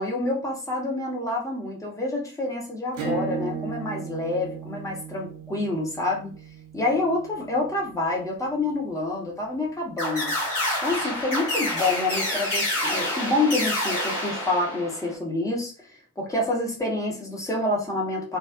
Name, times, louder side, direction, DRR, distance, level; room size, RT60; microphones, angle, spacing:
voice 1, 0.0-6.3 6.7-10.3 10.8-18.4, left 2 dB, 5° left, -1 dB, 0.7 m, -27 dB
Acoustic guitar / Strum, 2.9-8.2, right 5 dB, 40° right, 0.8 m, -36 dB
sound 1, 10.0-15.1, left 1 dB, 90° left, 0.9 m, -27 dB
2.3 x 2.3 x 2.3 m, 0.37 s
figure-of-eight pair, 65°, 44 cm